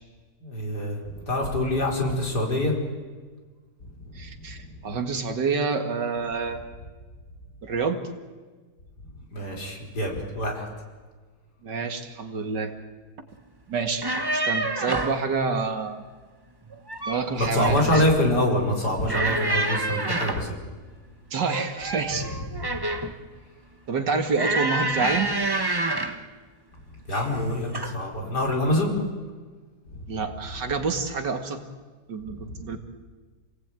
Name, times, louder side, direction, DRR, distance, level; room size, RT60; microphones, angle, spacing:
voice 1, 0.4-2.7 3.8-4.2 4.5-4.6 9.3-10.7 17.4-20.5 27.1-28.9 32.3-32.6, left 1 dB, 70° left, 0 dB, 5.1 m, -25 dB
voice 2, 4.1-6.6 7.6-8.0 11.6-12.7 13.7-16.0 17.1-18.0 21.3-22.4 23.9-25.3 30.1-31.6 32.1-32.8, right 4 dB, 90° right, 6 dB, 2.6 m, -28 dB
sound 1, 13.9-15.2 16.7-17.3 17.6-18.2 19.1-20.5 21.5-23.2 24.4-26.2 27.1-27.4 27.7-28.0, right 2 dB, 15° right, 1.1 m, -28 dB
28.5 x 19.0 x 9.1 m, 1.4 s
omnidirectional pair, 1.8 m